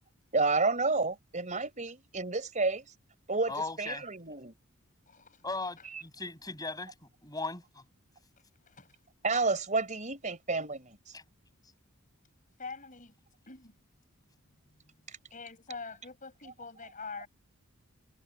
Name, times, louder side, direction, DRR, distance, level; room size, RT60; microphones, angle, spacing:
voice 1, 0.3-2.9 3.3-3.5 3.8-4.5 9.2-11.0 15.1-15.2, right 3 dB, 35° right, 5.0 m, -30 dB
voice 2, 3.5-4.1 5.4-7.8 11.1-11.2, left 3 dB, 15° left, 7.1 m, -38 dB
voice 3, 5.1-5.5 5.8-5.9 8.6-9.0 12.6-13.1 13.5-13.7 14.6-15.0 15.3-17.3, left 4 dB, 35° left, 6.9 m, -45 dB
head